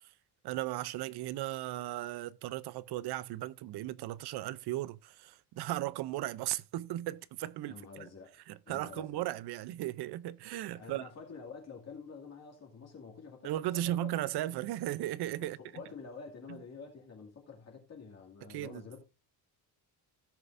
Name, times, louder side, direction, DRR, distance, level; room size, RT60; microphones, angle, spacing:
voice 1, 0.4-7.7 8.5-11.1 13.4-15.6 18.5-18.8, right 14 dB, 65° right, 0.6 m, -36 dB
voice 2, 7.7-8.3 8.7-9.2 10.7-14.1 15.4-19.0, left 5 dB, 35° left, 2.3 m, -48 dB
17.0 x 6.8 x 2.5 m
cardioid pair, 170°, 43 cm